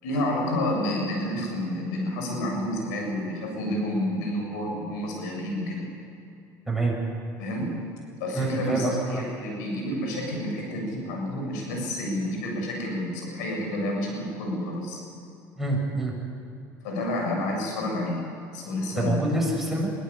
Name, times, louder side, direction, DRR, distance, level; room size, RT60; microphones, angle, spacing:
voice 1, 0.0-5.9 7.4-7.7 8.2-15.0 16.8-18.3 18.5-19.3, left 1 dB, 85° left, 1 dB, 7.4 m, -29 dB
voice 2, 8.3-9.2 15.6-16.1 19.0-19.9, right 2 dB, 5° right, -2 dB, 7.1 m, -26 dB
23.0 x 17.5 x 8.4 m, 2.6 s
supercardioid pair, 85°, 9 cm